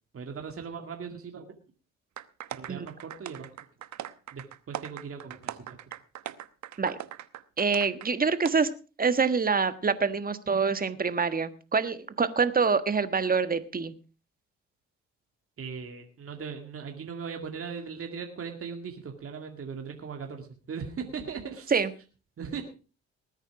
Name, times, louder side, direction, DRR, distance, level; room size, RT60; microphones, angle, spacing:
voice 1, 0.1-1.5 2.5-3.5 4.3-5.8 15.6-21.8 22.4-22.6, right 6 dB, 45° right, 3 dB, 2.3 m, -39 dB
sound 1, 2.2-8.1 8.4-8.5, right 12 dB, 65° right, 1.0 m, -40 dB
voice 2, 7.6-8.7 9.0-13.9 21.7-21.9, right 5 dB, 30° right, 12 dB, 1.4 m, -26 dB
19.5 x 9.1 x 4.9 m, 0.36 s
cardioid pair, 90°, 30 cm